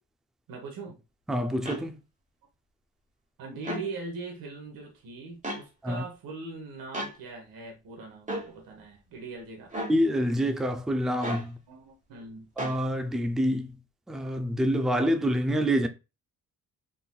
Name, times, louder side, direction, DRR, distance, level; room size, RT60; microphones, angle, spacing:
voice 1, 0.5-1.0 3.4-9.8 11.7-12.5, right 3 dB, 70° right, 1.1 m, -41 dB
voice 2, 1.3-2.0 5.8-6.0 9.9-11.6 12.6-13.7 14.1-15.9, equal, ahead, 0.4 m, -26 dB
sound 1, 1.7-1.8 3.6-3.9 5.4-5.6 6.9-7.1 8.3-8.5 9.7-10.0 11.2-11.5 12.6-12.8, right 1 dB, 20° right, 1.2 m, -33 dB
3.9 x 2.6 x 2.3 m
cardioid pair, 75°, 36 cm